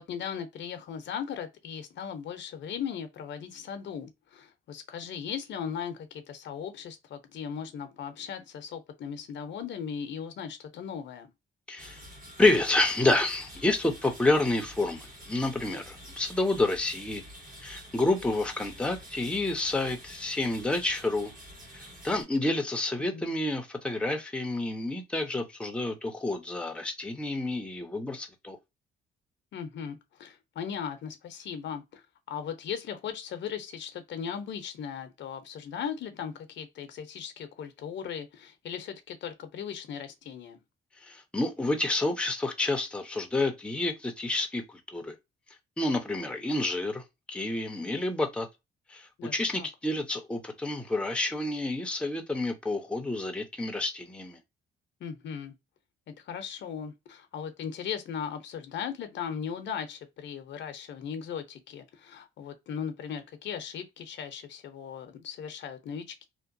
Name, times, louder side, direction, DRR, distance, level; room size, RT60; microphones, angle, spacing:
voice 1, 0.0-11.3 22.1-22.2 23.1-23.2 29.5-40.6 49.2-49.7 55.0-55.5 56.1-66.2, left 7 dB, 65° left, 0.7 m, -38 dB
voice 2, 11.7-12.0 12.4-17.2 17.6-21.3 21.7-28.6 41.1-45.2 45.8-47.0 47.3-48.5 48.9-54.4, left 2 dB, 5° left, 0.6 m, -29 dB
sound 1, 11.8-22.2, equal, 45° right, 1.2 m, -48 dB
2.8 x 2.2 x 2.6 m
cardioid pair, 90°, 20 cm